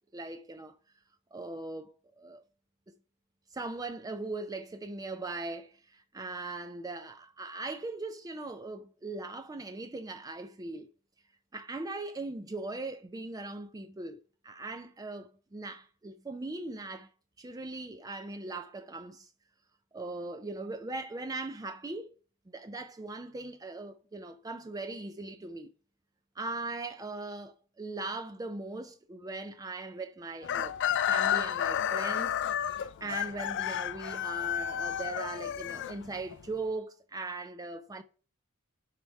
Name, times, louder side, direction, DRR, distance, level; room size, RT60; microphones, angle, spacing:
voice 1, 0.1-0.7 1.3-2.4 3.5-10.9 11.5-17.1 17.4-19.3 19.9-22.2 22.5-25.7 26.4-30.8 31.1-32.4 32.7-38.0, right 2 dB, 15° right, 0.4 m, -39 dB
Chicken rooster, 30.4-36.4, left 10 dB, 55° left, 0.4 m, -31 dB
9.3 x 3.4 x 4.6 m
head